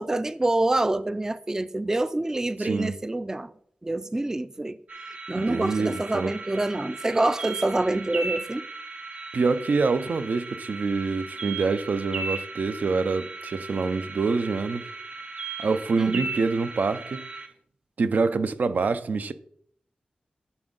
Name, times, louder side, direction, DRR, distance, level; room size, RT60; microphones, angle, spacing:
voice 1, 0.0-3.5 3.8-4.8 5.3-8.6 16.0-16.2, right 2 dB, 20° right, 0.3 m, -26 dB
voice 2, 2.6-2.9 5.4-6.3 9.3-14.9 15.6-17.3 18.0-19.3, right 4 dB, 75° right, 0.5 m, -26 dB
sound 1, 4.9-17.5, right 3 dB, 50° right, 0.9 m, -37 dB
9.8 x 4.4 x 3.9 m
wide cardioid pair, 85°, 3 cm